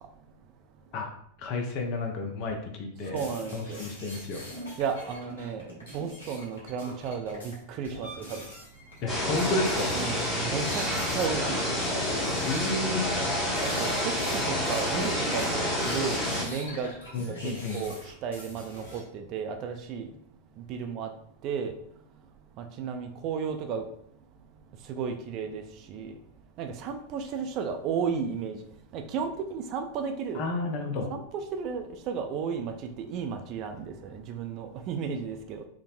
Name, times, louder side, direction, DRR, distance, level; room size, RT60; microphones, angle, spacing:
voice 1, 1.4-3.2 3.5-4.5 9.0-10.0 12.4-13.1 17.1-17.8 30.3-31.1, left 3 dB, 40° left, 3 dB, 0.6 m, -31 dB
sound 1, 3.0-13.0 13.2-19.0, equal, 70° left, 1.0 m, -44 dB
voice 2, 3.1-3.8 4.8-5.7 5.9-8.4 9.9-10.8 11.1-11.6 13.6-16.9 17.2-20.1 20.7-21.1 21.4-21.8 22.6-23.8 24.9-25.6 25.9-26.1 26.6-28.6 28.9-30.4 31.1-35.6, right 6 dB, 40° right, 5 dB, 0.3 m, -33 dB
sound 2, 9.1-16.4, left 1 dB, 15° left, 0.9 m, -28 dB
3.9 x 2.1 x 2.5 m, 0.69 s
figure-of-eight pair, 90°, 0 cm